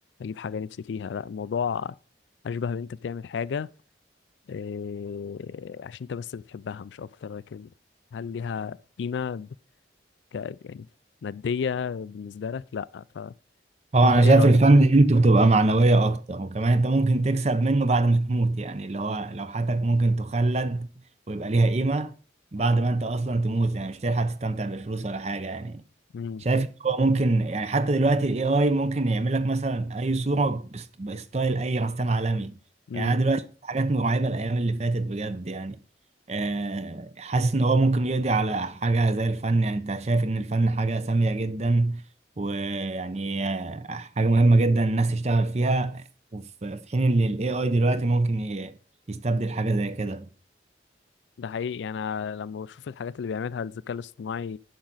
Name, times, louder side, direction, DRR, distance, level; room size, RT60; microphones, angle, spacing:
voice 1, 0.2-2.0 2.4-3.7 4.5-7.7 8.1-9.6 10.3-10.9 11.2-13.3 14.0-14.6 26.1-26.4 32.9-33.2 51.4-54.6, left 6 dB, 85° left, 0.4 m, -33 dB
voice 2, 13.9-20.9 21.3-22.1 22.5-25.8 26.4-32.5 32.9-35.8 36.3-42.0 42.4-46.0 46.3-48.8 49.1-50.3, right 2 dB, 35° right, 0.6 m, -23 dB
10.0 x 6.2 x 4.0 m
head